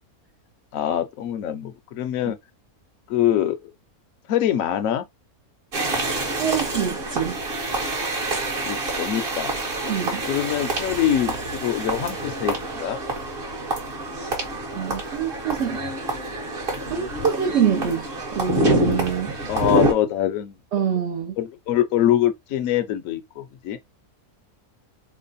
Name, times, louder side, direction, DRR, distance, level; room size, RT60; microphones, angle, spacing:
voice 1, 0.7-2.4 3.1-3.6 4.3-5.1 8.3-9.5 10.2-13.0 19.5-20.6 21.4-23.8, left 11 dB, 70° left, 1.0 m, -24 dB
sound 1, 5.7-19.9, right 1 dB, 45° right, 1.2 m, -27 dB
voice 2, 6.4-7.4 9.9-10.2 14.7-15.8 16.9-18.1 18.3-19.4 20.7-21.4, right 8 dB, 60° right, 0.8 m, -25 dB
3.1 x 2.1 x 4.0 m
omnidirectional pair, 1.6 m